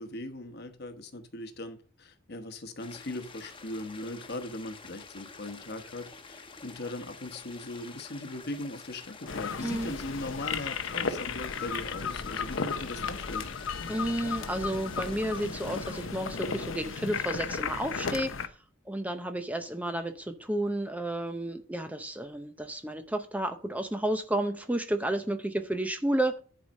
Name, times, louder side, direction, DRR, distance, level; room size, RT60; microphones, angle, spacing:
voice 1, 0.0-13.5, left 2 dB, 50° left, 1.2 m, -39 dB
sound 1, 2.8-16.0, left 4 dB, 25° left, 1.0 m, -48 dB
sound 2, 9.3-18.5, left 5 dB, 70° left, 0.8 m, -34 dB
voice 2, 13.9-18.3 18.9-26.4, right 1 dB, 5° right, 0.6 m, -31 dB
10.5 x 4.9 x 5.3 m
head